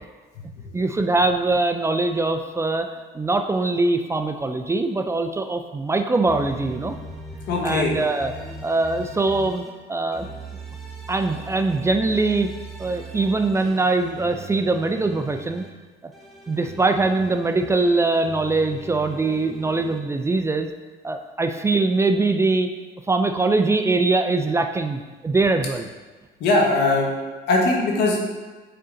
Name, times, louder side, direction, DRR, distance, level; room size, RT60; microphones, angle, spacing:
voice 1, 0.7-2.9 3.1-7.0 7.6-8.3 8.6-9.6 9.9-10.3 11.1-12.5 12.8-15.6 16.5-20.7 21.0-22.7 23.1-25.9, right 3 dB, 15° right, 6 dB, 0.3 m, -22 dB
sound 1, 6.3-9.7 10.1-15.7 16.1-20.0, right 2 dB, ahead, 1.0 m, -40 dB
voice 2, 7.5-7.9 26.4-27.1 27.5-28.3, left 2 dB, 80° left, -1 dB, 1.3 m, -20 dB
6.6 x 3.8 x 3.8 m, 1.3 s
cardioid pair, 110°, 17 cm